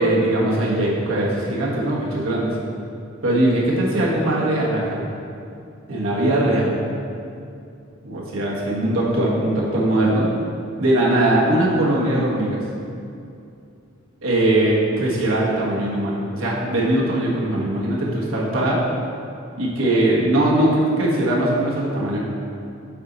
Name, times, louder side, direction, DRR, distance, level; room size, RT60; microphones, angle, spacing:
voice 1, 0.0-2.6 3.2-5.0 5.9-6.8 8.0-10.3 10.8-12.6 14.2-18.8 19.6-22.2, right 1 dB, 80° right, -4 dB, 1.3 m, -20 dB
7.5 x 4.0 x 4.0 m, 2.5 s
head